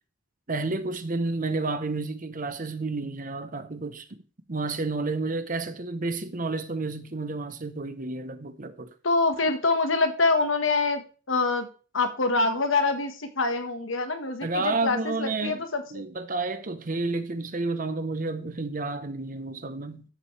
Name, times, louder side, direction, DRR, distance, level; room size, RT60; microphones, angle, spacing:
voice 1, 0.5-4.2 4.5-8.9 14.4-15.6 15.9-20.0, right 3 dB, 45° right, 1.0 m, -30 dB
voice 2, 9.0-11.7 11.9-16.0, left 3 dB, 90° left, 1.6 m, -25 dB
13.0 x 7.3 x 3.4 m
head